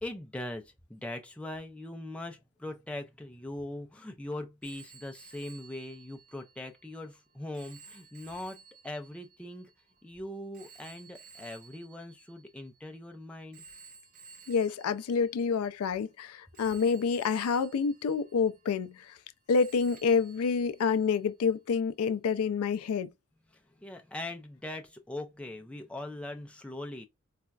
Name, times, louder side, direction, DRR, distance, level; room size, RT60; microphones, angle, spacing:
voice 1, 0.0-9.7 10.0-13.6 23.5-27.1, left 1 dB, 5° left, 0.4 m, -41 dB
Telephone, 4.6-13.0 13.5-16.1 16.5-19.3 19.5-21.3, right 5 dB, 40° right, 0.8 m, -55 dB
voice 2, 14.5-19.2 19.5-23.1, left 5 dB, 85° left, 0.4 m, -28 dB
4.1 x 2.3 x 2.3 m
head